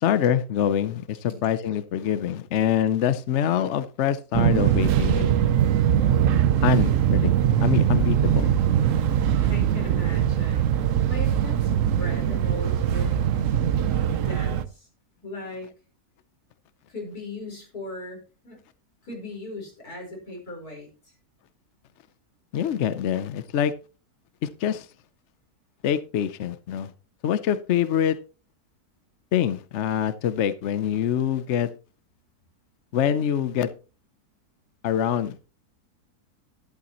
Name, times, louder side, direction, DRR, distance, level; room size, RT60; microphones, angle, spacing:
voice 1, 0.0-5.3 6.6-7.3 7.6-8.6 13.9-14.0 22.5-23.7 24.4-24.9 25.8-26.9 27.2-28.2 29.3-31.7 32.9-33.7 34.8-35.4, left 9 dB, 60° left, 0.8 m, -25 dB
Fixed-wing aircraft airplane, 4.3-14.6, right 10 dB, 65° right, 1.0 m, -21 dB
voice 2, 9.4-14.9 15.2-15.7 16.9-18.6 19.0-20.9, left 2 dB, 75° left, 5.3 m, -38 dB
11.5 x 11.0 x 3.0 m
omnidirectional pair, 1.6 m